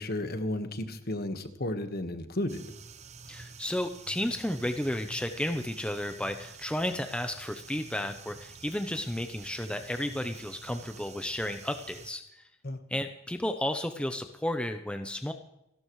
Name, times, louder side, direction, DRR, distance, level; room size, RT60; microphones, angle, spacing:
voice 1, 0.0-2.6 12.6-12.8, left 1 dB, 50° left, 8 dB, 1.4 m, -33 dB
sound 1, 2.5-12.1, right 5 dB, 35° right, 0.8 m, -48 dB
voice 2, 3.3-12.4 12.9-15.3, left 1 dB, 5° left, 6 dB, 0.7 m, -33 dB
29.0 x 12.0 x 3.2 m, 0.87 s
head